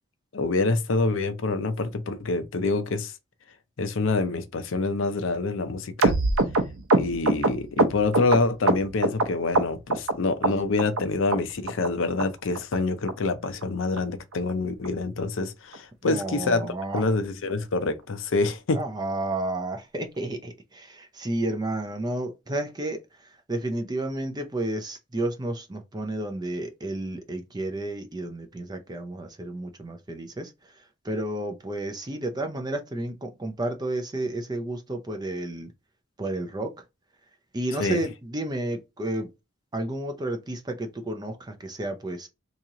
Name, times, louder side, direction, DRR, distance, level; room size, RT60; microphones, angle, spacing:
voice 1, 0.3-3.1 3.8-6.2 6.9-18.8 37.8-38.0, left 3 dB, 65° left, 0.5 m, -26 dB
sound 1, 6.0-9.3 9.5-10.1 10.4-11.0 11.3-11.4 11.7-11.9 12.2-12.3 12.6-12.8 13.1-13.2 13.4-13.6 14.0-14.1 14.3-14.5 14.8-14.9 15.2-15.4 15.7-15.8, right 2 dB, 85° right, 0.6 m, -23 dB
voice 2, 16.0-17.0 18.7-23.0 23.5-30.5 31.0-35.7 36.2-36.7 37.5-39.3 39.7-42.3, right 1 dB, 20° right, 0.5 m, -31 dB
2.9 x 2.8 x 3.6 m
head